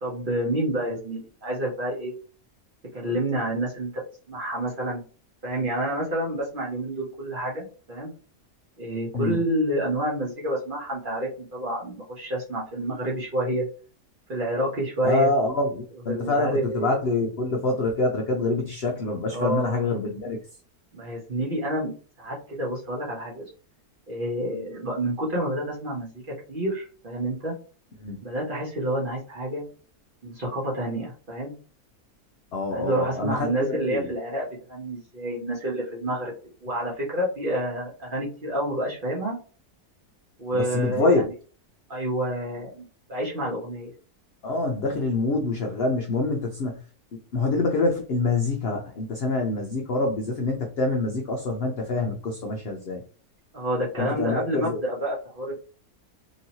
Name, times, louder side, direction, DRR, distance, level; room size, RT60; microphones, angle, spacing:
voice 1, 0.0-2.1 2.9-4.0 4.3-5.0 5.4-8.1 8.8-13.7 14.3-15.3 16.1-17.0 19.3-19.9 20.9-23.4 24.1-27.6 28.2-29.7 30.2-31.5 32.7-36.3 36.6-39.4 40.4-41.2 41.9-43.9 53.5-55.5, right 1 dB, 45° right, -3 dB, 0.8 m, -29 dB
voice 2, 15.0-20.4 28.0-28.2 32.5-34.1 40.5-41.2 44.4-46.8 47.1-53.0 54.0-54.8, left 2 dB, 70° left, 2 dB, 0.6 m, -26 dB
3.0 x 2.8 x 2.7 m, 0.39 s
omnidirectional pair, 1.6 m